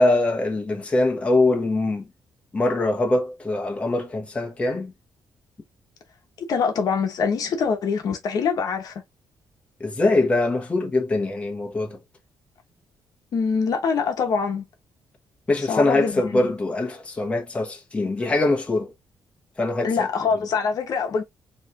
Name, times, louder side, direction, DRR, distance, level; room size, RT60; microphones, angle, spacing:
voice 1, 0.0-2.0 2.5-4.9 9.8-12.0 15.5-18.9 19.6-20.1, left 2 dB, 15° left, 1.1 m, -23 dB
voice 2, 6.5-8.9 13.3-14.7 15.7-16.4 19.8-21.2, left 5 dB, 55° left, 1.0 m, -24 dB
4.8 x 3.1 x 2.5 m
cardioid pair, 140°, 7 cm